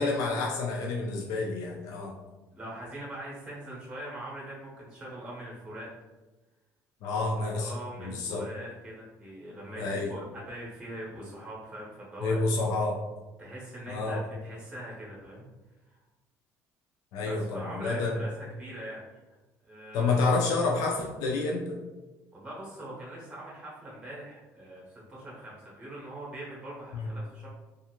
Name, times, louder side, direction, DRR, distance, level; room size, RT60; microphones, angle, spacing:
voice 1, 0.0-2.1 7.0-7.7 8.0-8.4 9.8-10.1 12.2-13.0 13.9-14.2 17.1-18.2 19.9-21.8 26.9-27.1, left 3 dB, 70° left, -1 dB, 0.4 m, -29 dB
voice 2, 2.5-5.9 7.1-7.2 7.5-12.4 13.4-15.4 15.9-16.0 17.2-18.3 18.6-19.0 19.6-20.2 22.3-27.5, right 1 dB, 15° right, -5 dB, 0.7 m, -42 dB
2.5 x 2.4 x 2.9 m, 1.1 s
cardioid pair, 165°, 7 cm